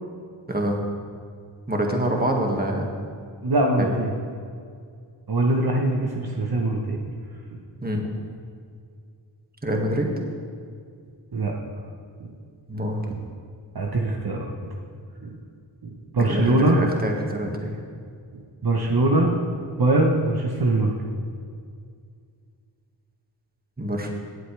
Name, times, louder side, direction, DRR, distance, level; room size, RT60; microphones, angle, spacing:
voice 1, 0.5-0.8 1.7-2.9 3.8-3.9 7.8-8.0 9.6-10.1 12.7-13.1 16.3-17.8 23.8-24.1, right 1 dB, 20° right, 1 dB, 1.9 m, -26 dB
voice 2, 3.4-4.1 5.3-7.0 11.3-11.7 12.2-12.3 13.7-14.8 15.2-15.4 15.8-16.8 18.6-19.3 19.8-21.0, right 2 dB, 55° right, 0 dB, 1.2 m, -22 dB
17.0 x 8.0 x 3.4 m, 2.2 s
cardioid pair, 50°, 46 cm